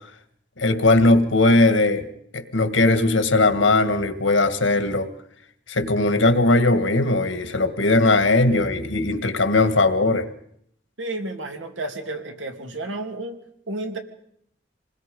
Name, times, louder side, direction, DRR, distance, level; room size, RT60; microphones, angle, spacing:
voice 1, 0.6-2.1 2.3-5.1 5.7-10.3, left 2 dB, 80° left, 9 dB, 2.0 m, -19 dB
voice 2, 11.0-13.4 13.7-14.0, right 2 dB, 80° right, 4 dB, 2.9 m, -31 dB
27.5 x 20.5 x 5.4 m, 0.68 s
head